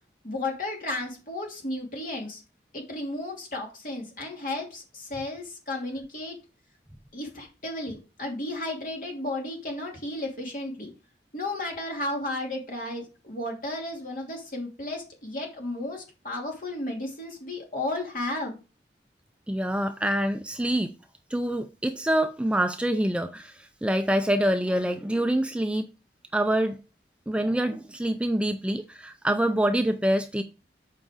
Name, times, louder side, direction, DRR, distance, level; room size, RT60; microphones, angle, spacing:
voice 1, 0.2-2.4 2.7-6.4 7.1-10.9 11.3-18.6, left 2 dB, 50° left, 2.6 m, -33 dB
voice 2, 19.5-20.9 21.3-25.9 26.3-26.8 27.3-30.4, right 1 dB, 5° right, 0.4 m, -26 dB
7.6 x 4.8 x 4.9 m
head